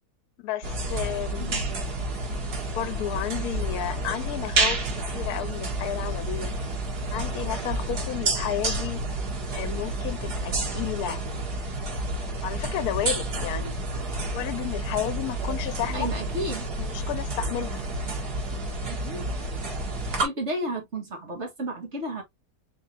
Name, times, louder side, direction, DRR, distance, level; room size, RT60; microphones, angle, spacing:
voice 1, 0.4-1.5 2.7-4.8 5.1-6.5 7.1-9.0 9.5-11.2 12.4-13.7 14.3-16.1 16.7-17.8, left 11 dB, 80° left, 1.1 m, -32 dB
sound 1, 0.6-20.3, right 2 dB, 85° right, 2.1 m, -30 dB
voice 2, 15.9-16.7 18.9-19.4 20.2-22.2, right 1 dB, 45° right, 1.9 m, -32 dB
4.3 x 3.8 x 2.7 m
omnidirectional pair, 1.6 m